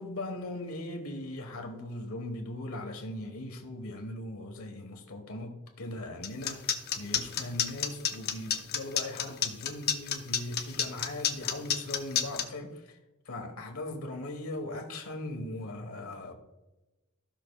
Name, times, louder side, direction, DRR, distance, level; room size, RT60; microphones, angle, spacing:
voice 1, 0.0-13.0 13.2-16.3, left 1 dB, 80° left, 1.4 m, -39 dB
sound 1, 6.2-12.4, left 8 dB, 45° left, 0.7 m, -29 dB
15.0 x 5.9 x 2.3 m
head